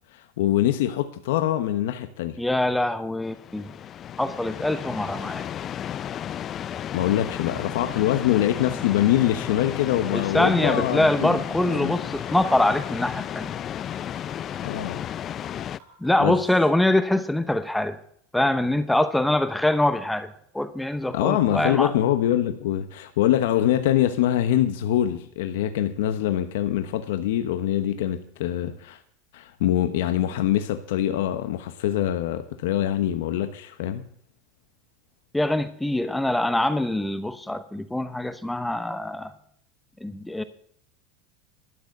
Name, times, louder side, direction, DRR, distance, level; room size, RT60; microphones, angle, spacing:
voice 1, 0.1-2.4 6.9-12.0 14.6-15.0 16.2-16.3 21.1-29.0 29.3-34.1, left 12 dB, 80° left, 1.0 m, -24 dB
voice 2, 2.4-3.7 4.2-5.5 10.1-13.5 16.0-18.0 18.3-20.3 20.5-21.9 35.3-39.3 40.0-40.4, left 1 dB, 5° left, 0.8 m, -24 dB
sound 1, 3.2-15.8, left 10 dB, 40° left, 0.4 m, -33 dB
sound 2, 9.4-9.5 9.8-11.0 11.4-11.5 11.8-13.0 13.4-13.5 13.8-15.0 15.4-15.5 15.8-16.8, right 5 dB, 65° right, 6.2 m, -52 dB
12.5 x 6.5 x 8.4 m
supercardioid pair, 110°, 0 cm